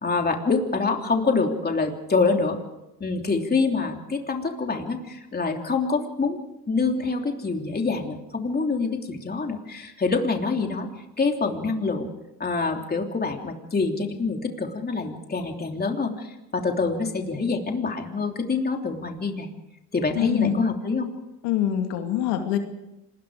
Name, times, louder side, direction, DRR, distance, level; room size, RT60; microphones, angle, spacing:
voice 1, 0.0-2.6 3.0-6.4 6.7-10.9 11.2-12.1 12.4-19.5 19.9-21.1, left 4 dB, 25° left, 3 dB, 3.2 m, -26 dB
voice 2, 20.1-20.7 21.4-22.6, left 11 dB, 90° left, 5 dB, 2.5 m, -24 dB
26.5 x 21.0 x 5.0 m, 0.93 s
cardioid pair, 100°, 40 cm